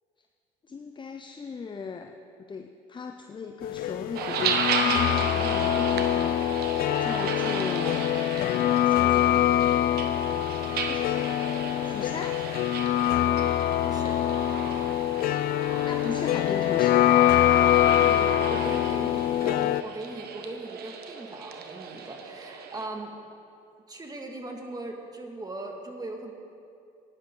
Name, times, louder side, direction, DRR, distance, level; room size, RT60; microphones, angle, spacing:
voice 1, 0.7-2.1 2.4-8.1 8.4-9.5 10.5-11.3 11.8-12.4 15.8-17.1, left 5 dB, 25° left, 5 dB, 0.7 m, -38 dB
sound 1, 3.6-19.8, left 13 dB, 55° left, 0.4 m, -24 dB
sound 2, 4.1-22.9, right 6 dB, 65° right, 1.2 m, -34 dB
voice 2, 13.8-14.1 18.0-23.1 23.9-26.3, right 2 dB, 20° right, 2 dB, 2.0 m, -39 dB
17.0 x 10.5 x 3.9 m, 2.5 s
hypercardioid pair, 70°, 18 cm